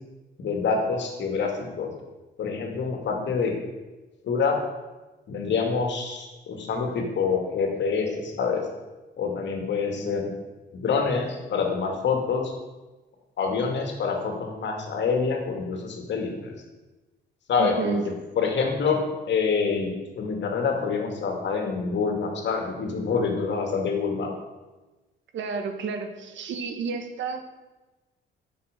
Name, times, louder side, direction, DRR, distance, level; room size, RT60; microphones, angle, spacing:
voice 1, 0.4-1.5 1.8-1.9 2.4-3.5 4.2-4.6 5.3-8.6 9.2-10.3 10.7-12.5 13.4-16.5 17.5-18.0 18.4-24.3, left 5 dB, 65° left, 2 dB, 2.2 m, -26 dB
voice 2, 17.6-18.0 25.3-27.4, right 5 dB, 70° right, 6 dB, 1.4 m, -30 dB
8.6 x 6.8 x 6.6 m, 1.2 s
cardioid pair, 90°, 20 cm